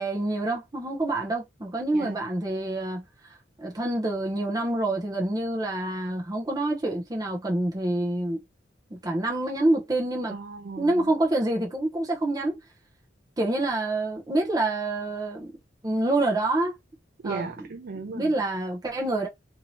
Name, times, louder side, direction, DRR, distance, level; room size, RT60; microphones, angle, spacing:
voice 1, 0.0-3.0 3.6-8.4 8.9-10.3 10.8-12.6 13.4-15.5 15.8-16.7 17.2-17.5 18.1-19.3, right 2 dB, 20° right, 0.7 m, -27 dB
voice 2, 10.3-11.1 17.2-18.3, right 4 dB, 55° right, 0.4 m, -36 dB
2.7 x 2.7 x 3.0 m
head